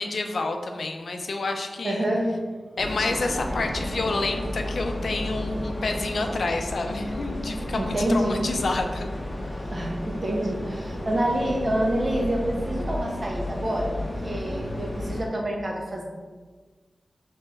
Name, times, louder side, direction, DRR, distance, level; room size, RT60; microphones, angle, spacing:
voice 1, 0.0-2.0 2.8-9.1, left 3 dB, 70° left, 4 dB, 0.4 m, -28 dB
voice 2, 1.8-2.4 7.8-8.4 9.7-14.0 14.2-16.0, right 1 dB, 40° right, -1 dB, 0.9 m, -27 dB
sound 1, 2.8-15.2, left 1 dB, 20° left, 0.7 m, -32 dB
3.3 x 3.1 x 4.5 m, 1.4 s
wide cardioid pair, 85°, 0 cm